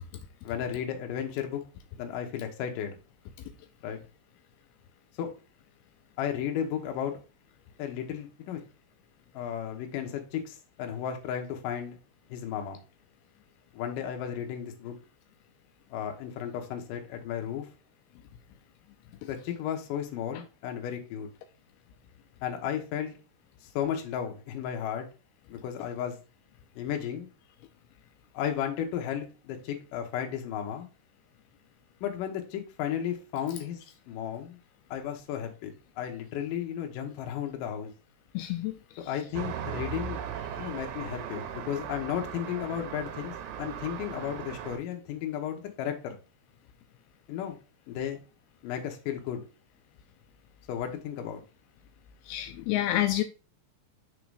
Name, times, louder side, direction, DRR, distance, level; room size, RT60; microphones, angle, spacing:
voice 1, 0.4-1.6 2.0-3.0 3.8-4.0 5.2-5.3 6.2-7.2 7.8-8.6 9.3-12.0 12.3-12.8 13.7-15.0 15.9-17.7 19.3-21.3 22.4-23.2 23.7-25.1 25.5-26.2 26.8-27.3 28.3-30.9 32.0-33.8 34.1-34.6 34.9-37.9 39.1-40.2 40.6-46.2 47.3-47.6 47.9-48.2 48.6-49.4 50.7-51.4, left 9 dB, 70° left, 2.1 m, -34 dB
voice 2, 38.3-38.7 52.3-53.2, left 14 dB, 90° left, 2.2 m, -28 dB
Traffic noise roadway noise, 39.3-44.8, right 8 dB, 80° right, 2.0 m, -38 dB
6.1 x 3.9 x 4.7 m
omnidirectional pair, 5.2 m